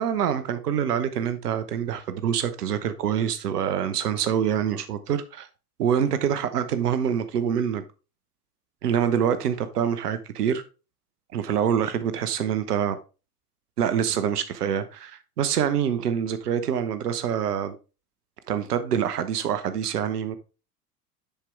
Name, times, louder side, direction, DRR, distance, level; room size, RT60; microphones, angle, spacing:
voice 1, 0.0-5.5 5.8-7.8 8.8-10.6 11.3-13.0 13.8-17.8 18.5-20.4, right 8 dB, 80° right, 1.1 m, -25 dB
10.5 x 4.6 x 3.3 m
hypercardioid pair, 80°, 46 cm